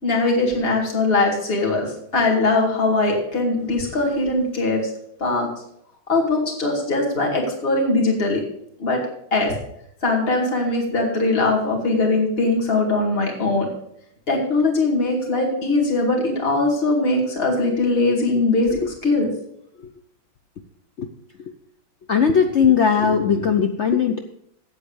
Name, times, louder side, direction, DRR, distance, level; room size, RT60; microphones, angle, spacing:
voice 1, 0.0-4.8 5.2-5.5 6.1-8.4 8.8-9.0 9.3-9.5 10.0-13.7 14.3-19.3, left 2 dB, 30° left, 0 dB, 2.3 m, -21 dB
voice 2, 22.1-24.2, left 6 dB, 75° left, 6 dB, 0.6 m, -18 dB
8.2 x 8.1 x 7.0 m, 0.74 s
omnidirectional pair, 2.1 m